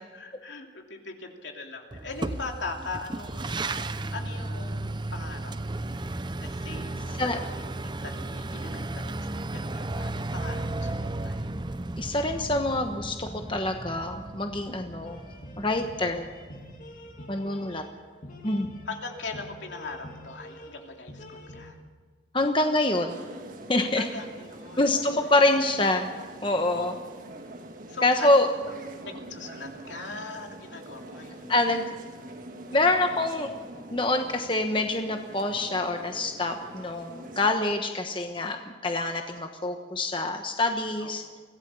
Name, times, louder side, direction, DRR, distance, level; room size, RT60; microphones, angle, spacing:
voice 1, 0.1-5.8 6.4-11.5 18.9-21.8 24.0-25.2 26.7-26.9 27.9-28.4 29.0-31.5 41.0-41.4, left 3 dB, 75° left, 2 dB, 2.8 m, -40 dB
sound 1, 1.9-17.7, right 2 dB, 25° right, 0.6 m, -35 dB
voice 2, 12.0-15.2 15.6-16.3 17.3-17.9 18.4-18.7 22.3-23.2 23.7-24.1 24.8-26.1 26.4-26.9 28.0-28.5 31.5-31.8 32.7-33.5 33.9-41.2, left 2 dB, 25° left, 5 dB, 1.1 m, -26 dB
sound 2, 15.1-21.7, left 1 dB, 45° left, 2.7 m, -46 dB
sound 3, 23.1-37.5, right 1 dB, 45° right, 1.8 m, -44 dB
24.0 x 16.5 x 7.0 m, 1.5 s
head